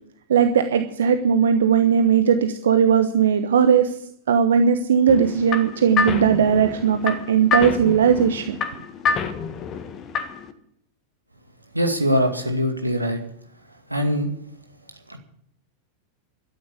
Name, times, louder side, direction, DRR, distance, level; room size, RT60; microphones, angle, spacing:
voice 1, 0.3-3.9 4.3-8.6, right 7 dB, 65° right, 8 dB, 1.1 m, -18 dB
sound 1, 5.1-10.5, left 5 dB, 30° left, 1.6 m, -27 dB
voice 2, 11.7-13.2 13.9-14.3 15.1-15.2, equal, 85° right, 4 dB, 2.3 m, -22 dB
13.0 x 10.5 x 8.6 m, 0.69 s
figure-of-eight pair, 90°, 0 cm